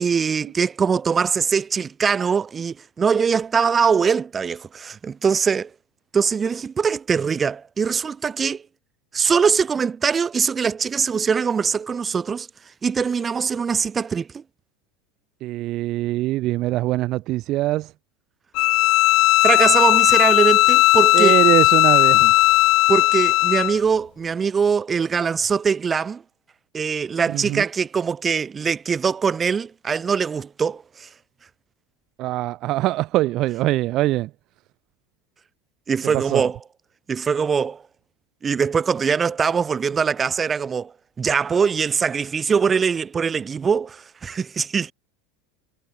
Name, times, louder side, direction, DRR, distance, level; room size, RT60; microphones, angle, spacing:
voice 1, 0.0-5.7 6.1-8.6 9.1-12.5 12.8-14.4 19.4-21.4 22.9-26.2 26.7-31.1 35.9-36.6 37.1-37.8 38.4-44.9, right 6 dB, 25° right, 1.2 m, -22 dB
voice 2, 15.4-17.9 21.1-22.3 27.3-27.6 32.2-34.3 36.0-36.4, right 17 dB, 50° right, 0.3 m, -23 dB
Bowed string instrument, 18.5-23.8, left 21 dB, 55° left, 0.4 m, -16 dB
supercardioid pair, 110°, 0 cm